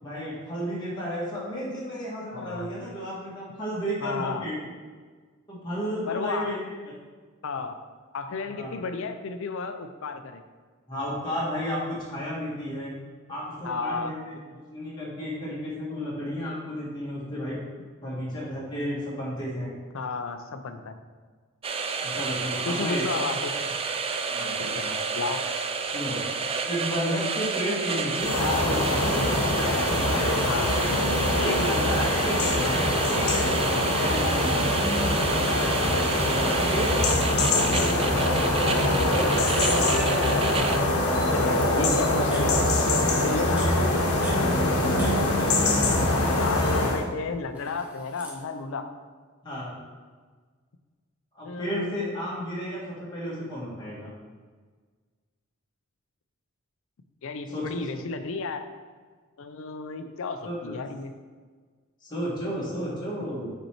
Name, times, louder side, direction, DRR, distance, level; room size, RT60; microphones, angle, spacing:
voice 1, 0.0-4.6 5.5-6.6 8.5-8.7 10.9-12.9 13.3-14.3 14.7-17.6 18.0-19.7 22.0-23.0 24.3-25.0 25.9-26.2 26.6-29.4 30.0-30.3 31.3-34.7 35.4-35.6 36.4-39.8 49.4-49.8 51.3-54.1 57.5-57.6 60.4-60.8 62.0-63.5, equal, 20° left, -7 dB, 1.5 m, -32 dB
voice 2, 2.3-2.7 4.0-4.5 6.1-6.6 7.4-7.8 8.1-10.4 13.6-14.1 19.9-21.0 22.6-23.6 24.4-24.8 25.1-25.4 30.4-30.8 35.8-36.0 41.3-43.0 43.2-45.2 46.4-48.9 51.4-52.2 57.2-58.6 59.4-61.1, left 4 dB, 65° left, 8 dB, 0.5 m, -33 dB
sound 1, 21.6-40.8, right 5 dB, 25° right, 0.3 m, -30 dB
sound 2, 28.2-47.0, left 1 dB, 85° left, 1.0 m, -24 dB
Camera, 38.9-39.0 39.2-40.7 41.1-41.3 41.9-42.5 43.3-45.1 45.4-46.1 46.4-46.7 47.5-48.4, right 1 dB, 5° right, 0.9 m, -40 dB
5.4 x 4.5 x 4.4 m, 1.5 s
head